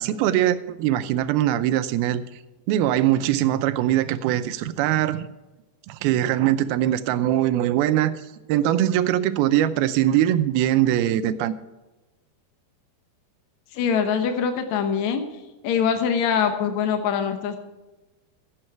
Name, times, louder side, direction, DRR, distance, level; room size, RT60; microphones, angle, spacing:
voice 1, 0.0-2.2 2.7-5.3 5.9-8.2 8.5-11.5, right 12 dB, 80° right, 2.4 m, -22 dB
voice 2, 13.7-15.2 15.6-17.6, left 7 dB, 70° left, 1.7 m, -23 dB
15.5 x 8.7 x 4.6 m
omnidirectional pair, 4.6 m